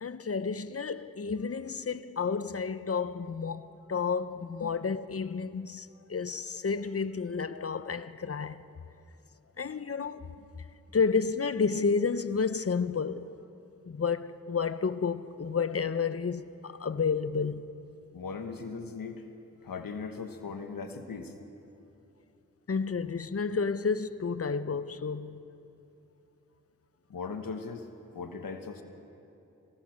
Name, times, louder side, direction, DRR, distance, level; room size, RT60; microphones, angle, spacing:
voice 1, 0.0-8.6 9.6-10.3 10.9-13.4 13.8-17.8 22.7-25.5, left 5 dB, 45° left, 0.9 m, -31 dB
voice 2, 18.1-19.2 19.6-21.3 27.1-27.9 28.1-28.8, left 5 dB, 80° left, 1.5 m, -38 dB
25.5 x 16.5 x 6.5 m
cardioid pair, 45°, 33 cm